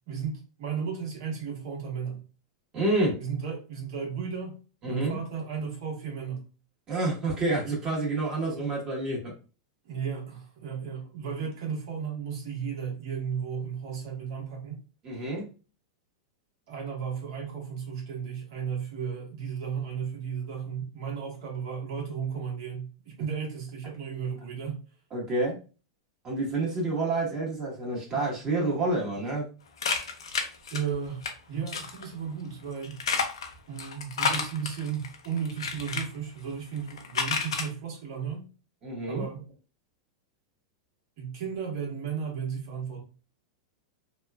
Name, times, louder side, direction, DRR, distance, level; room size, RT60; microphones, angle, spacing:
voice 1, 0.1-2.2 3.2-4.6 4.9-6.5 9.8-14.8 16.7-24.8 30.3-30.4 30.7-33.0 33.7-38.5 39.1-39.4 41.2-43.0, right 7 dB, 60° right, 1.3 m, -34 dB
voice 2, 2.7-3.2 4.8-5.2 6.9-9.3 15.0-15.5 25.1-25.6 26.2-29.5 38.8-39.3, right 2 dB, 30° right, 1.4 m, -28 dB
sound 1, 29.8-31.3 31.7-32.0 32.8-36.0 36.8-37.7, left 5 dB, 85° left, 0.6 m, -30 dB
2.9 x 2.3 x 2.3 m
hypercardioid pair, 120°, 3 cm